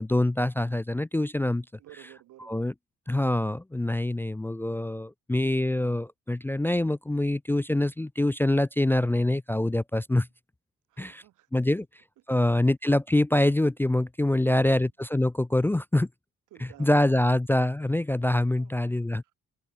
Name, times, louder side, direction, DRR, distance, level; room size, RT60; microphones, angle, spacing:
voice 1, 0.0-1.6 2.5-2.7 3.1-10.3 11.0-11.2 11.5-11.9 12.3-16.1 16.8-19.2, left 1 dB, 5° left, 0.4 m, -25 dB
voice 2, 1.8-2.7 10.9-11.5 14.3-14.9 16.5-17.0 18.5-18.9 19.2-19.3, right 15 dB, 85° right, 3.0 m, -53 dB
cardioid pair, 90°, 30 cm